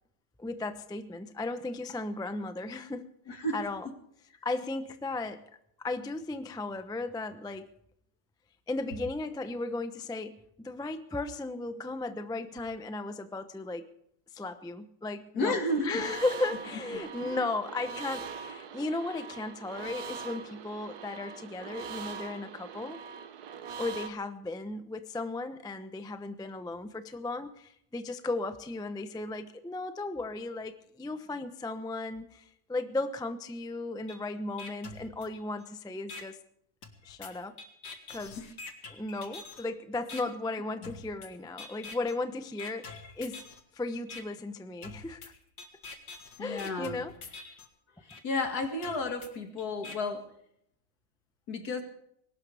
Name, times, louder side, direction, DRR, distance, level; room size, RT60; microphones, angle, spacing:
voice 1, 0.4-3.9 4.4-5.4 5.8-7.7 8.7-13.9 14.3-23.0 23.8-36.4 37.0-37.6 38.1-38.4 38.9-43.4 43.7-45.3 46.4-47.1, left 2 dB, 5° left, 10 dB, 0.4 m, -36 dB
voice 2, 3.3-3.6 15.3-16.0 17.2-17.4 38.4-38.5 40.8-40.9 46.4-47.0 48.0-50.3 51.5-51.8, left 2 dB, 65° left, 5 dB, 2.5 m, -32 dB
sound 1, 15.7-24.1, right 6 dB, 70° right, 1.4 m, -42 dB
sound 2, 34.1-34.2 34.6-35.6 36.1-36.2 36.8-39.7 40.1-40.2 40.8-41.3 41.6-42.2 42.6-43.6 44.1-44.2 44.8-47.7 48.1-48.2 48.8-50.0, left 4 dB, 85° left, 2.3 m, -45 dB
21.0 x 18.0 x 3.5 m, 0.73 s
omnidirectional pair, 1.8 m